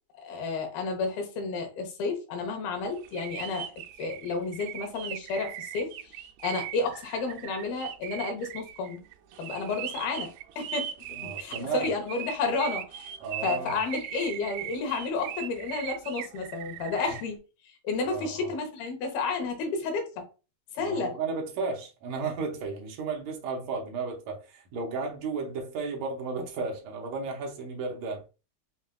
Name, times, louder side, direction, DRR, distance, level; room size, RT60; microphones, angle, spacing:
voice 1, 0.2-3.7 4.0-6.1 6.4-9.0 9.4-10.9 11.2-13.1 13.4-17.4 17.7-20.3 20.7-21.1, left 4 dB, 90° left, 3.0 m, -31 dB
sound 1, 3.0-17.2, right 11 dB, 90° right, 2.4 m, -39 dB
voice 2, 11.1-11.9 13.2-13.8 18.1-18.5 20.8-28.2, right 4 dB, 70° right, 1.7 m, -34 dB
7.0 x 2.4 x 2.2 m
omnidirectional pair, 4.1 m